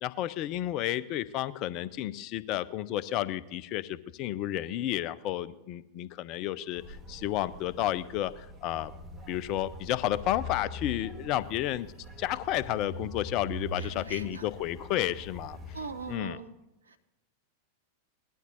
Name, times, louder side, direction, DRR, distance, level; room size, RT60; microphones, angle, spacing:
voice 1, 0.0-8.9 9.3-11.9 12.2-15.8 16.1-16.4, left 13 dB, 40° left, 17 dB, 0.6 m, -32 dB
sound 1, 6.7-16.2, left 1 dB, 20° right, 2.7 m, -43 dB
voice 2, 13.8-14.5 15.7-16.5 16.9-17.0, right 4 dB, 75° right, 8 dB, 1.2 m, -41 dB
18.5 x 12.0 x 4.0 m, 0.95 s
figure-of-eight pair, 90°, 0 cm